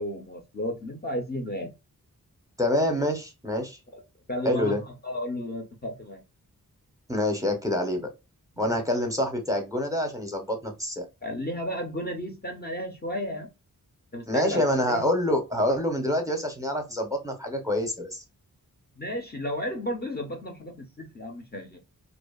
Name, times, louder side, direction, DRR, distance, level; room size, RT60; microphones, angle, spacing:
voice 1, 0.0-1.7 3.9-4.0 4.3-6.2 8.6-8.8 11.2-13.5 14.1-15.1 19.0-21.8, equal, 30° left, 0.6 m, -33 dB
voice 2, 2.6-3.8 4.4-4.8 7.1-8.1 8.6-11.1 14.3-18.2, left 1 dB, 10° right, 0.7 m, -26 dB
2.6 x 2.4 x 2.3 m
wide cardioid pair, 110°, 34 cm